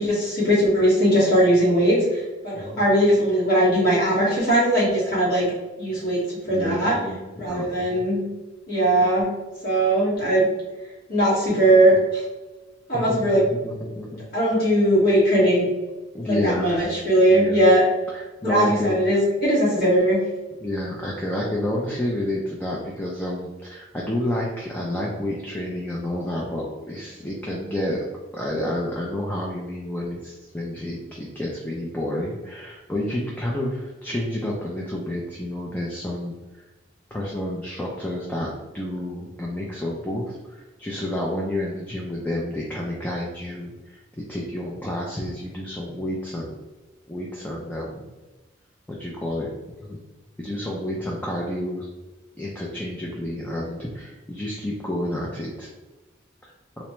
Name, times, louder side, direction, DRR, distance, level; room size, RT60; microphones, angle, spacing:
voice 1, 0.0-5.4 5.8-6.2 6.5-6.9 7.4-8.2 8.7-9.3 9.6-10.4 11.1-12.2 12.9-13.4 14.3-15.7 16.3-17.8 18.4-20.2, right 1 dB, 50° left, -8 dB, 1.4 m, -19 dB
voice 2, 2.5-2.8 6.5-7.2 7.4-8.1 12.9-14.2 16.1-16.7 17.3-17.6 18.1-19.0 20.6-28.0 28.3-36.3 37.1-46.5 47.1-48.0 48.9-49.5 49.8-50.0 50.4-51.9 52.4-55.7, left 1 dB, 10° left, -4 dB, 0.4 m, -30 dB
4.0 x 2.2 x 3.0 m, 1.2 s
head